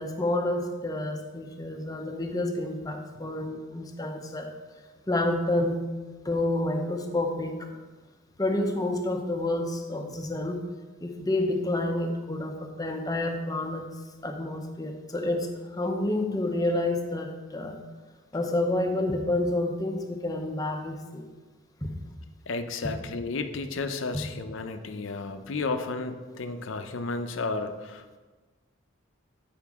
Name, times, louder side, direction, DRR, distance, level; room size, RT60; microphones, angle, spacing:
voice 1, 0.0-4.5 5.1-5.8 6.2-7.7 8.4-10.6 11.0-13.9 14.2-17.8 18.3-21.3 21.8-21.9, left 1 dB, 15° left, 3 dB, 0.6 m, -29 dB
voice 2, 22.5-28.2, left 3 dB, 65° left, 8 dB, 0.6 m, -33 dB
8.4 x 5.0 x 3.5 m, 1.3 s
head